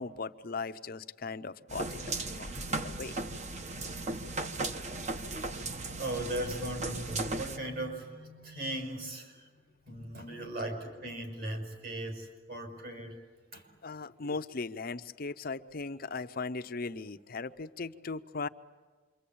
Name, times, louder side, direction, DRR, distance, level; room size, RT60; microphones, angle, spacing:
voice 1, 0.0-3.2 13.8-18.5, left 4 dB, 50° left, 11 dB, 0.8 m, -38 dB
sound 1, 1.7-7.6, right 2 dB, 40° right, 1.2 m, -36 dB
voice 2, 5.7-9.5 9.9-13.2 13.5-13.6, right 1 dB, 55° right, 3 dB, 5.8 m, -38 dB
27.5 x 24.5 x 8.6 m, 1.4 s
head